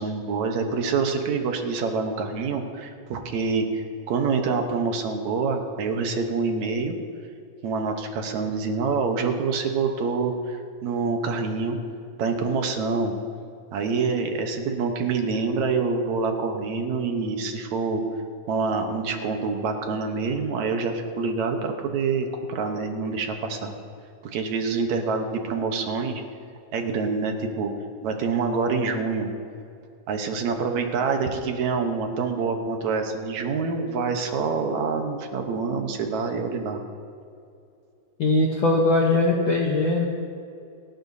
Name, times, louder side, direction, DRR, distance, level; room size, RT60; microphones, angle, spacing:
voice 1, 0.0-7.0 7.6-11.8 12.2-13.1 13.7-18.0 18.5-23.7 24.3-26.2 26.7-27.7 28.0-29.3 30.1-36.8, right 4 dB, 70° right, 4 dB, 2.3 m, -26 dB
voice 2, 38.2-40.1, left 2 dB, 60° left, -1 dB, 1.3 m, -20 dB
28.5 x 11.0 x 2.8 m, 2.5 s
omnidirectional pair, 3.6 m